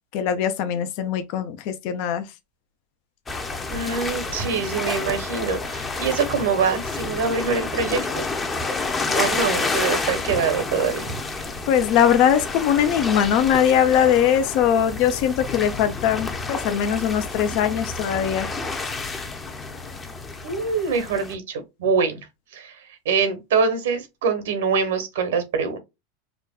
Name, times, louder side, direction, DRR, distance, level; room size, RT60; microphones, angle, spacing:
voice 1, 0.1-2.2 11.7-18.5, left 9 dB, 60° left, 0.6 m, -21 dB
sound 1, 3.3-21.3, left 3 dB, 20° left, 0.7 m, -29 dB
voice 2, 3.7-8.3 9.1-11.1 20.4-22.3 22.5-25.8, right 5 dB, 80° right, 1.2 m, -24 dB
5.0 x 2.3 x 2.3 m
hypercardioid pair, 115°, 0 cm